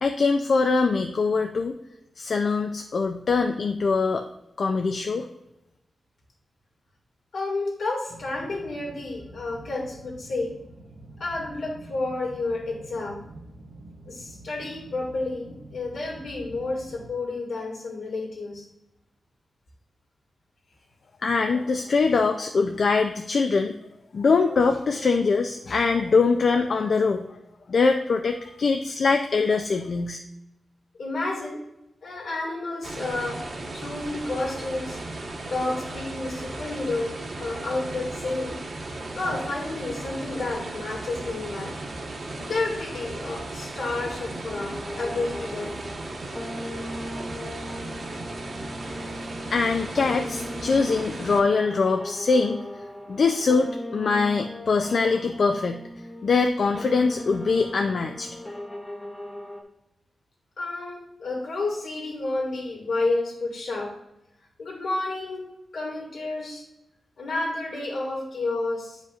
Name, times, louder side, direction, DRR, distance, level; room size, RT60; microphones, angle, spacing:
voice 1, 0.0-1.8 2.2-4.2 4.6-5.3 21.2-23.7 24.1-27.2 27.7-30.2 49.5-52.6 53.1-55.8 56.2-58.3, left 4 dB, 55° left, 5 dB, 0.4 m, -23 dB
voice 2, 7.3-10.5 11.2-13.2 14.1-18.7 31.0-31.6 32.0-33.4 33.7-35.0 35.5-37.1 37.4-38.6 39.1-41.8 42.4-45.7 48.9-49.1 60.6-63.9 64.6-65.5 65.7-66.6 67.2-69.0, left 2 dB, 75° left, -1 dB, 2.1 m, -30 dB
sound 1, 8.1-17.1, right 1 dB, 90° right, 1.2 m, -46 dB
sound 2, 32.8-51.4, right 2 dB, 50° right, 1.1 m, -36 dB
sound 3, 44.5-59.6, left 1 dB, 15° left, 0.8 m, -38 dB
9.1 x 5.1 x 2.4 m, 0.87 s
wide cardioid pair, 140°, 0 cm